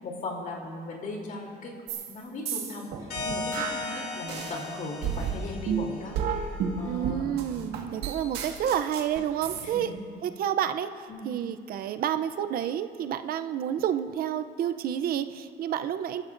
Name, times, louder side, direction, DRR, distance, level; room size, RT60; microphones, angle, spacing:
voice 1, 0.0-1.7 2.1-6.2 6.7-7.4 9.6-10.0 11.1-11.3, left 2 dB, 50° left, -1 dB, 3.2 m, -38 dB
sound 1, 1.9-2.1 2.5-4.6 5.0-9.6, right 7 dB, 85° right, 1.7 m, -32 dB
sound 2, 3.1-6.5, left 3 dB, 70° left, 2.1 m, -37 dB
voice 2, 6.8-9.9 10.2-10.9 11.2-16.2, right 10 dB, 60° right, 10 dB, 0.6 m, -29 dB
25.5 x 13.5 x 2.6 m, 2.2 s
cardioid pair, 110°, 17 cm